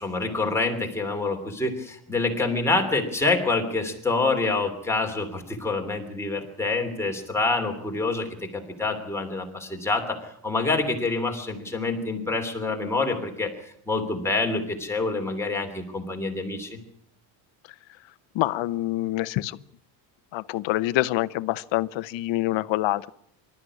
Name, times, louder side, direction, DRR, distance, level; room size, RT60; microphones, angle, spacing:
voice 1, 0.0-16.8, left 3 dB, 5° left, 1 dB, 3.1 m, -27 dB
voice 2, 18.3-19.6 20.3-23.1, left 16 dB, 65° left, 16 dB, 0.9 m, -26 dB
25.5 x 13.0 x 9.8 m, 0.70 s
cardioid pair, 180°, 49 cm